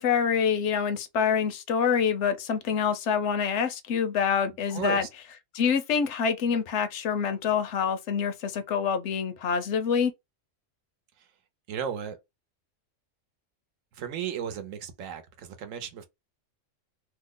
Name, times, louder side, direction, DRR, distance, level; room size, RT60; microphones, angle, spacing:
voice 1, 0.0-5.1 5.5-10.1, left 7 dB, 70° left, 0.8 m, -26 dB
voice 2, 4.7-5.1 11.7-12.2 14.0-16.1, right 8 dB, 80° right, 1.0 m, -34 dB
2.9 x 2.0 x 3.6 m
omnidirectional pair, 1.3 m